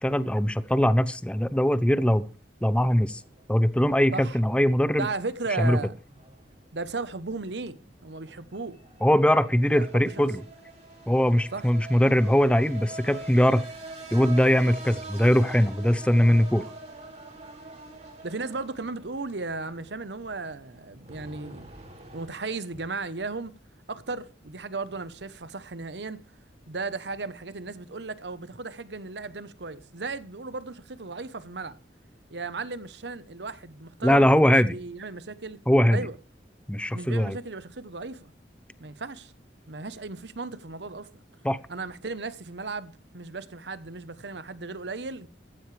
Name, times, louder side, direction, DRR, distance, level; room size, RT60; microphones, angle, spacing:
voice 1, 0.0-2.3 2.6-3.2 3.5-5.1 5.6-5.8 9.0-10.4 11.1-13.7 14.1-16.6 34.0-34.8 35.7-36.1 36.7-37.4 41.4-41.6, equal, 5° left, 0.7 m, -21 dB
sound 1, 3.0-22.8, right 2 dB, 40° right, 5.2 m, -46 dB
voice 2, 5.0-5.9 6.7-8.8 9.5-10.1 11.5-11.7 18.2-21.7 22.1-23.5 23.9-26.2 26.7-31.8 32.3-35.6 35.9-36.2 36.9-38.3 38.8-39.3 39.7-41.1 41.7-45.3, right 3 dB, 75° right, 1.0 m, -35 dB
15.5 x 14.5 x 3.4 m
head